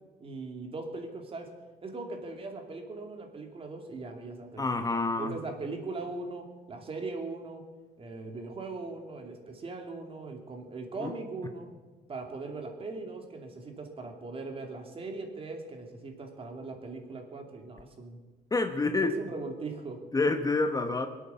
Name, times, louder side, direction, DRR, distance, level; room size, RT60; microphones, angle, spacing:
voice 1, 0.2-1.5 1.8-7.7 8.0-11.7 12.1-18.2 19.0-20.0, right 3 dB, 35° right, 4 dB, 2.7 m, -40 dB
voice 2, 4.6-5.4 11.0-11.1 18.5-19.2 20.1-21.1, left 3 dB, 20° left, 7 dB, 1.0 m, -27 dB
22.5 x 8.7 x 7.1 m, 1.3 s
cardioid pair, 110°, 17 cm